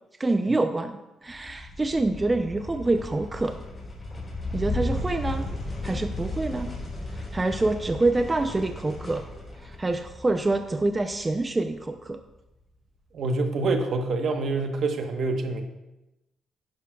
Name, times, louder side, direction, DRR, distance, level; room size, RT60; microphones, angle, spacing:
voice 1, 0.2-3.6 4.5-5.5 5.8-6.7 7.1-9.3 9.6-12.2, right 2 dB, 20° right, 7 dB, 0.5 m, -26 dB
sound 1, 1.3-11.9, left 1 dB, 35° left, 3.7 m, -35 dB
voice 2, 13.1-15.6, right 3 dB, 60° right, 5 dB, 1.1 m, -26 dB
11.0 x 10.5 x 2.3 m, 0.97 s
cardioid pair, 90°, 0 cm